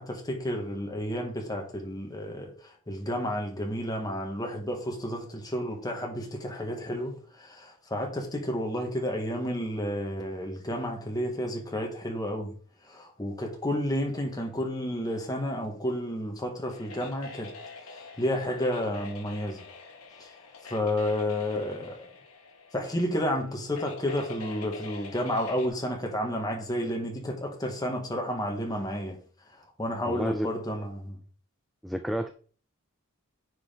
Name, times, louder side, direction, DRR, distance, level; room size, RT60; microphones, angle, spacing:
voice 1, 0.0-12.5 12.8-17.5 17.8-19.6 20.2-20.3 20.6-22.1 22.7-29.2 29.5-31.2, equal, 15° left, 1.8 m, -31 dB
sound 1, 16.7-25.7, left 4 dB, 75° left, 1.6 m, -46 dB
voice 2, 30.1-30.5 31.8-32.3, equal, ahead, 0.4 m, -30 dB
9.7 x 4.9 x 3.9 m
head